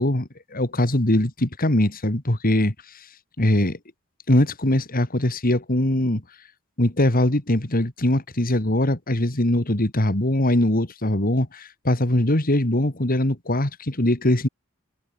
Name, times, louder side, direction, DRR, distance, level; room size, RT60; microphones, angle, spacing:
voice 1, 0.0-2.7 3.4-3.8 4.3-6.2 6.8-14.5, left 1 dB, 45° left, 2.6 m, -21 dB
head